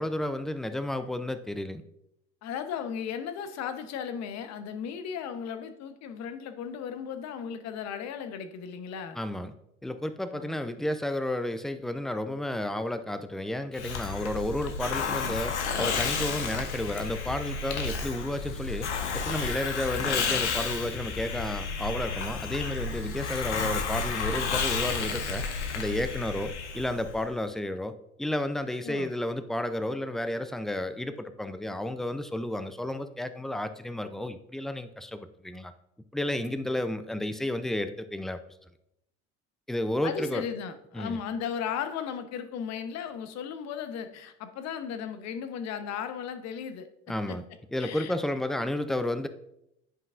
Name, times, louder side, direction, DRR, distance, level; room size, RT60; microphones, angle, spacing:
voice 1, 0.0-1.8 9.1-9.5 9.8-25.4 25.7-27.9 28.2-35.7 36.1-38.4 39.7-40.4 40.9-41.2 47.1-47.4 47.7-49.3, left 1 dB, ahead, 10 dB, 0.4 m, -32 dB
voice 2, 2.4-9.2 10.3-10.6 28.8-29.1 40.0-46.9 47.3-47.4 47.8-48.1, left 7 dB, 50° left, 9 dB, 0.9 m, -36 dB
Hiss, 13.7-27.2, left 5 dB, 85° left, 0.8 m, -31 dB
9.9 x 5.3 x 2.5 m, 0.80 s
hypercardioid pair, 70°, 34 cm